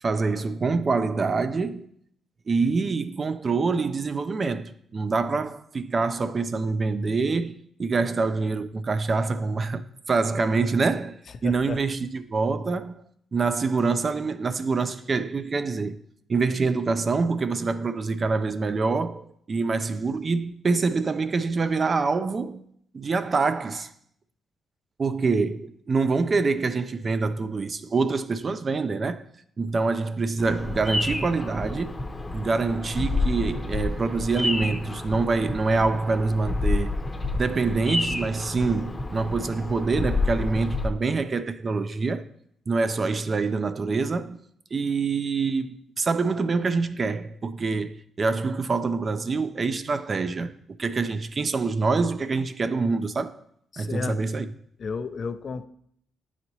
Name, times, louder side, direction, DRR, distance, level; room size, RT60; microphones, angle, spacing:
voice 1, 0.0-1.9 2.5-13.0 13.3-16.0 16.3-22.6 22.9-23.9 25.0-29.2 29.6-32.0 32.3-37.0 37.3-42.2 42.7-44.4 44.7-50.5 50.8-53.4 53.8-54.5, right 4 dB, 40° right, 0.4 m, -25 dB
voice 2, 11.4-11.8 53.7-54.2 54.8-55.7, left 5 dB, 50° left, 0.4 m, -32 dB
Bird vocalization bird call bird song, 30.4-40.9, left 2 dB, 20° left, 0.7 m, -29 dB
9.5 x 4.1 x 3.0 m
cardioid pair, 75°, 0 cm